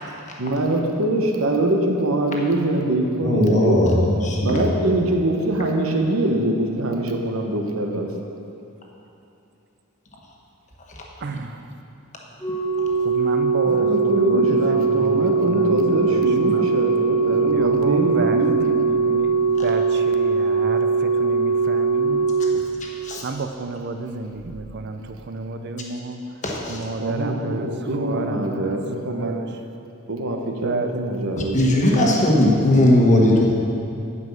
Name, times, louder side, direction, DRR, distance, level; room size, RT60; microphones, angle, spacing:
voice 1, 0.4-3.8 4.4-8.1 13.7-18.7 27.0-29.4 30.1-32.2, right 1 dB, 75° right, 2 dB, 1.1 m, -23 dB
voice 2, 3.2-4.6 10.9-11.0 23.0-23.2 26.4-26.8 31.5-33.5, left 1 dB, 35° left, -2 dB, 1.4 m, -18 dB
voice 3, 11.2-11.7 13.0-16.8 17.5-22.6 23.2-26.4 26.7-28.8 29.0-29.6 30.6-30.9, right 3 dB, 55° right, 7 dB, 0.6 m, -31 dB
Organ, 12.4-23.3 24.4-24.6, right 5 dB, 15° left, 0.9 m, -21 dB
9.5 x 5.5 x 7.3 m, 2.7 s
head